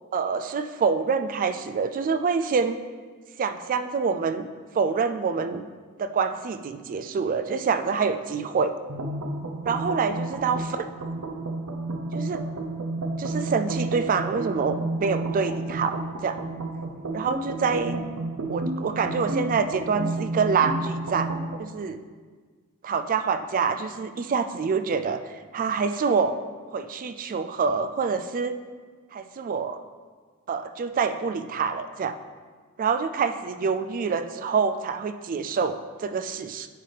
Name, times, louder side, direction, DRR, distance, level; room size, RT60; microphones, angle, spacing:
voice 1, 0.1-2.8 3.4-4.5 4.7-5.7 6.0-8.7 9.6-10.7 12.1-12.4 13.2-16.4 17.1-18.0 18.5-22.0 22.8-25.2 25.5-26.3 26.7-28.6 29.1-29.8 30.5-32.1 32.8-36.7, right 5 dB, 40° right, 9 dB, 0.3 m, -26 dB
sound 1, 8.9-21.6, right 2 dB, 80° right, 0.6 m, -31 dB
9.2 x 4.0 x 3.3 m, 1.5 s
head